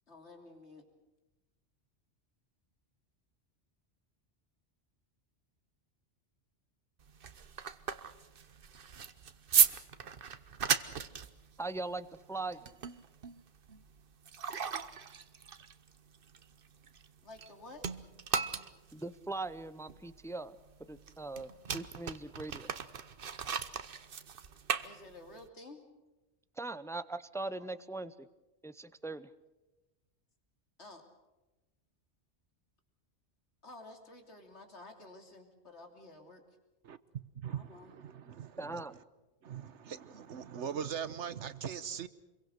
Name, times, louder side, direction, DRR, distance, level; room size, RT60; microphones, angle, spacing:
voice 1, 0.1-0.8 17.2-17.9 24.8-25.8 30.8-31.0 33.6-36.4 37.5-37.9, left 2 dB, 75° left, 3.4 m, -52 dB
sound 1, 7.0-17.5 17.8-25.5, right 6 dB, 55° right, 1.1 m, -36 dB
voice 2, 11.6-12.7 18.9-20.6 20.9-22.7 26.6-28.3 28.6-29.3 38.6-38.9, right 2 dB, 5° left, 0.5 m, -40 dB
voice 3, 37.3-39.0 39.4-42.1, right 8 dB, 85° right, 1.3 m, -41 dB
26.0 x 22.5 x 6.6 m
omnidirectional pair, 1.2 m